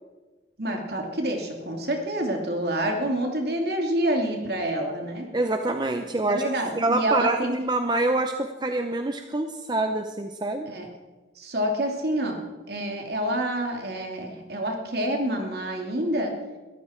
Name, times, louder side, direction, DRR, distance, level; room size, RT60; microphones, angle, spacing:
voice 1, 0.6-5.3 6.3-7.3 10.7-10.9 11.4-12.4 12.7-16.3, right 1 dB, 60° right, 2 dB, 2.9 m, -27 dB
voice 2, 5.3-6.4 6.8-10.7, right 2 dB, 25° right, 6 dB, 0.7 m, -26 dB
22.0 x 13.5 x 4.5 m, 1.2 s
head